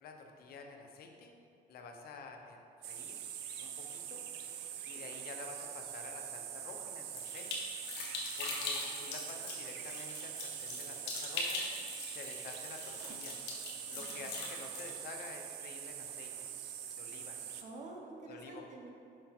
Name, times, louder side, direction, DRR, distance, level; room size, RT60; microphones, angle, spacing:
voice 1, 0.0-1.3 1.7-3.3 3.6-4.2 4.8-7.5 8.4-11.7 12.1-13.4 13.9-16.5 17.0-17.4 18.2-18.6, left 4 dB, 65° left, 3 dB, 0.8 m, -50 dB
sound 1, 2.8-17.6, right 10 dB, 80° right, 0.6 m, -44 dB
sound 2, 7.1-15.0, left 3 dB, 90° left, 1.2 m, -42 dB
voice 2, 13.9-14.3 17.6-18.9, right 2 dB, 45° right, 0 dB, 1.1 m, -49 dB
6.4 x 5.1 x 4.3 m, 2.6 s
cardioid pair, 110°, 17 cm